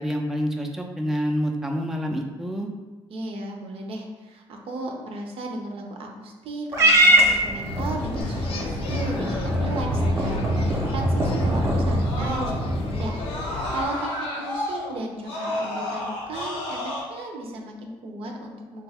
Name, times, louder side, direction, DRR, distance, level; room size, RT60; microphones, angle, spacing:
voice 1, 0.0-2.7, equal, 5° right, 1 dB, 0.4 m, -27 dB
voice 2, 3.1-18.8, right 1 dB, 70° right, 2 dB, 0.5 m, -35 dB
Purr / Meow, 6.7-13.2, right 1 dB, 25° right, 0.7 m, -23 dB
sound 1, 7.6-13.9, left 3 dB, 70° left, 0.5 m, -34 dB
Screaming, 8.2-12.8 13.2-17.0, left 1 dB, 85° left, 0.9 m, -33 dB
3.3 x 2.3 x 3.3 m, 1.3 s
cardioid pair, 85°, 10 cm